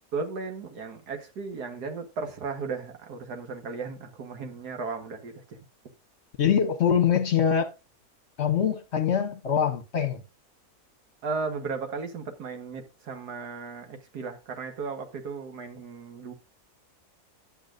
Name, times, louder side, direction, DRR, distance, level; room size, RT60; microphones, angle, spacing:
voice 1, 0.1-5.6 11.2-16.3, right 4 dB, 85° right, 1.9 m, -35 dB
voice 2, 6.4-7.7 8.4-10.2, left 8 dB, 50° left, 1.1 m, -24 dB
11.0 x 8.3 x 2.5 m
omnidirectional pair, 1.7 m